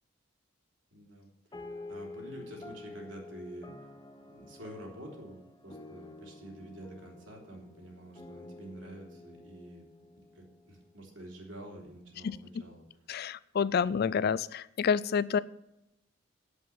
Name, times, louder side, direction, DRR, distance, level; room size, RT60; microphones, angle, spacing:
voice 1, 0.9-3.7 4.2-9.9 10.1-12.8, right 1 dB, 70° right, 0 dB, 3.2 m, -48 dB
sound 1, 1.5-11.3, left 2 dB, 20° left, 0.8 m, -49 dB
voice 2, 13.1-15.4, left 6 dB, 50° left, 18 dB, 0.4 m, -28 dB
8.3 x 7.4 x 8.7 m, 0.87 s
head